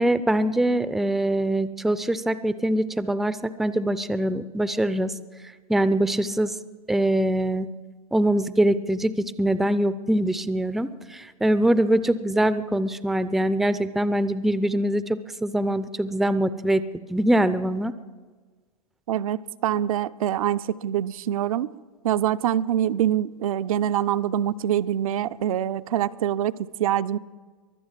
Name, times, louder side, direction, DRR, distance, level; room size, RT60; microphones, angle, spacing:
voice 1, 0.0-5.1 5.7-6.5 6.9-7.7 8.1-16.8 17.1-17.9, right 1 dB, ahead, 14 dB, 0.4 m, -23 dB
voice 2, 19.1-21.7 22.0-27.2, right 11 dB, 65° right, 12 dB, 0.6 m, -25 dB
22.5 x 7.7 x 7.5 m, 1.4 s
hypercardioid pair, 115°, 19 cm